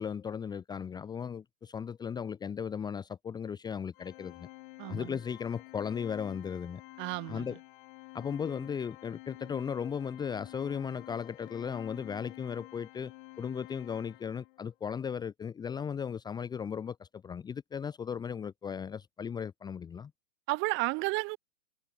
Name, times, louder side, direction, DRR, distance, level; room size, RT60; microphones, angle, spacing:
voice 1, 0.0-4.5 4.9-6.8 7.3-7.6 8.1-13.1 13.4-20.1, left 7 dB, 10° left, 1.1 m, -36 dB
Organ, 3.9-14.7, left 24 dB, 40° left, 4.9 m, -50 dB
voice 2, 4.8-5.2 7.0-7.5 20.5-21.4, right 24 dB, 30° right, 2.9 m, -32 dB
hypercardioid pair, 120°, 36 cm